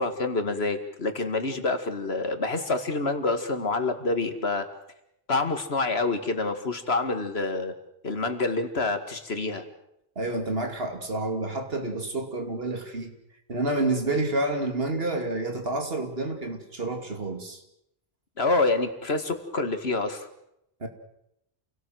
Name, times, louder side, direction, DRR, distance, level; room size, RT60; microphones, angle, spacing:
voice 1, 0.0-4.7 5.3-7.7 8.0-9.6 18.4-20.3, left 3 dB, 80° left, 8 dB, 2.3 m, -27 dB
voice 2, 10.2-13.1 13.5-17.6 20.8-20.9, right 2 dB, 70° right, 6 dB, 2.9 m, -29 dB
28.0 x 17.5 x 7.8 m, 0.80 s
omnidirectional pair, 1.1 m